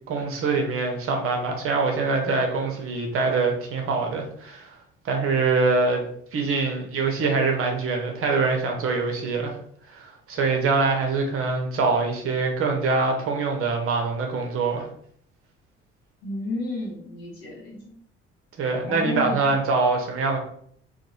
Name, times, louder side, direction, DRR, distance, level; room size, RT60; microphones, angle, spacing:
voice 1, 0.1-4.7 5.0-6.0 6.3-9.6 9.9-10.0 10.3-14.8 18.6-20.4, right 4 dB, 40° right, 2 dB, 0.7 m, -24 dB
voice 2, 16.2-17.9 18.9-19.5, left 2 dB, 70° left, -3 dB, 0.9 m, -32 dB
2.9 x 2.2 x 2.3 m, 0.62 s
figure-of-eight pair, 45°, 33 cm